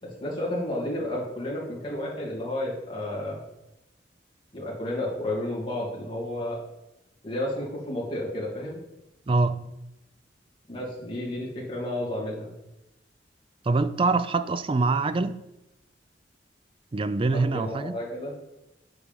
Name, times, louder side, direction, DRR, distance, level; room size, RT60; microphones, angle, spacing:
voice 1, 0.0-3.4 4.5-6.6 7.2-8.8 10.7-12.5 17.3-18.3, left 1 dB, 30° left, 2.6 m, -31 dB
voice 2, 9.3-9.6 13.7-15.4 16.9-17.9, right 3 dB, 30° right, 0.4 m, -24 dB
8.2 x 4.9 x 5.3 m
head